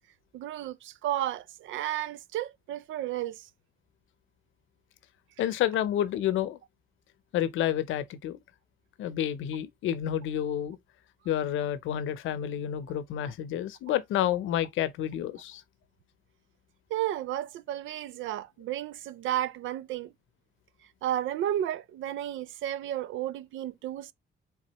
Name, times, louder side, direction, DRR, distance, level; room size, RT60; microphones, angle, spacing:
voice 1, 0.3-3.5 16.9-20.1 21.0-24.1, right 12 dB, 80° right, 0.5 m, -32 dB
voice 2, 5.4-6.6 7.3-8.4 9.0-10.8 11.3-15.6, left 11 dB, 80° left, 0.7 m, -29 dB
4.6 x 3.6 x 2.9 m
cardioid pair, 90°, 20 cm